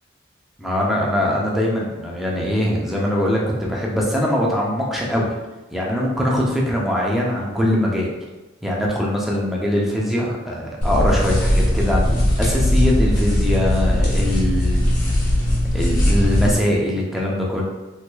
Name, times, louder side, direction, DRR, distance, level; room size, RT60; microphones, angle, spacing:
voice 1, 0.6-5.3 5.7-8.1 8.6-15.2 15.7-17.6, left 1 dB, ahead, -4 dB, 0.5 m, -22 dB
sound 1, 10.8-16.5, left 1 dB, 40° left, 1.1 m, -19 dB
3.4 x 3.1 x 2.2 m, 1.1 s
head